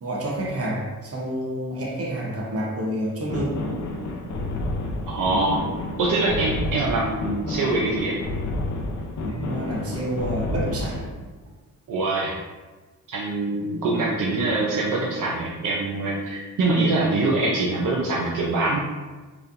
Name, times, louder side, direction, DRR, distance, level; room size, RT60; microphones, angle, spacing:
voice 1, 0.0-3.6 9.3-11.1, right 1 dB, 45° right, -2 dB, 1.1 m, -28 dB
sound 1, 3.3-11.1, left 2 dB, 55° left, 0.7 m, -30 dB
voice 2, 5.1-5.6 6.0-8.2 11.9-12.4 13.1-18.8, right 2 dB, 65° right, -3 dB, 0.7 m, -24 dB
4.6 x 3.4 x 2.6 m, 1.3 s
cardioid pair, 110°, 34 cm